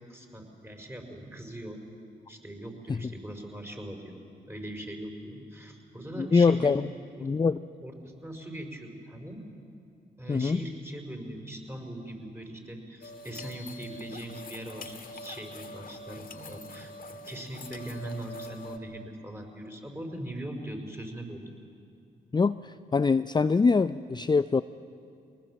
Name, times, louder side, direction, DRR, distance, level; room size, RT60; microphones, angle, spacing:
voice 1, 0.1-1.8 2.3-4.2 4.5-6.8 7.1-7.3 7.8-9.4 10.2-21.5, right 1 dB, 15° right, 3 dB, 5.2 m, -41 dB
voice 2, 6.2-6.9 7.2-7.6 10.3-10.6 22.3-24.6, left 4 dB, 25° left, 12 dB, 0.5 m, -24 dB
sound 1, 13.0-18.8, left 1 dB, 50° left, 1.9 m, -44 dB
23.5 x 19.0 x 7.6 m, 2.5 s
supercardioid pair, 50°, 18 cm